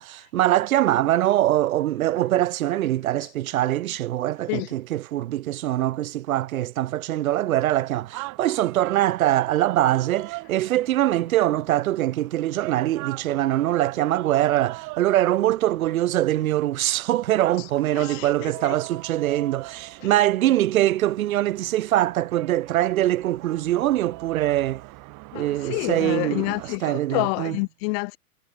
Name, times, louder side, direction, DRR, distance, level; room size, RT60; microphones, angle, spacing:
voice 1, 0.0-24.8 25.3-27.6, right 14 dB, 60° right, 1.8 m, -23 dB
sound 1, 7.5-26.8, right 26 dB, 40° right, 6.0 m, -41 dB
voice 2, 17.9-18.8 20.0-20.1 25.3-28.2, left 33 dB, 40° left, 1.2 m, -28 dB
hypercardioid pair, 115°, 47 cm